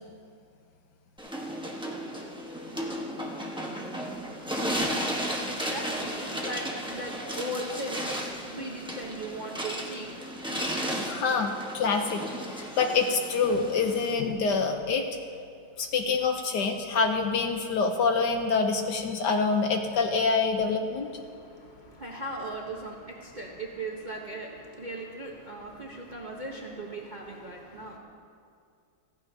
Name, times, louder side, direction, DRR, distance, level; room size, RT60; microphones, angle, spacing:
sound 1, 1.2-14.1, equal, 5° right, 0.6 m, -34 dB
voice 1, 4.1-10.9 21.0-28.0, right 1 dB, 35° right, -2 dB, 0.8 m, -39 dB
voice 2, 11.0-15.0 15.8-21.1, left 4 dB, 65° left, 4 dB, 1.2 m, -26 dB
15.0 x 15.0 x 2.8 m, 2.4 s
omnidirectional pair, 2.2 m